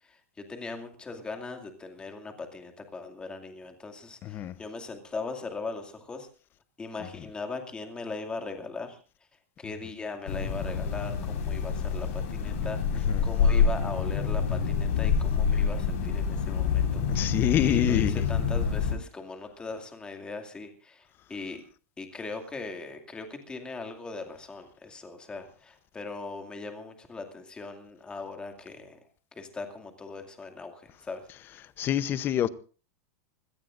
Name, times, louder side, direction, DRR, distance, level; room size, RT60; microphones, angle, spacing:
voice 1, 0.0-6.3 6.8-9.0 9.6-21.6 22.0-29.0 29.3-31.2, left 3 dB, 10° left, 2.4 m, -39 dB
voice 2, 4.2-4.5 13.1-13.2 17.1-18.2 31.8-32.5, left 11 dB, 25° left, 0.8 m, -26 dB
sound 1, 10.3-18.9, left 6 dB, 65° left, 5.1 m, -27 dB
25.0 x 17.5 x 2.6 m
supercardioid pair, 155°, 8 cm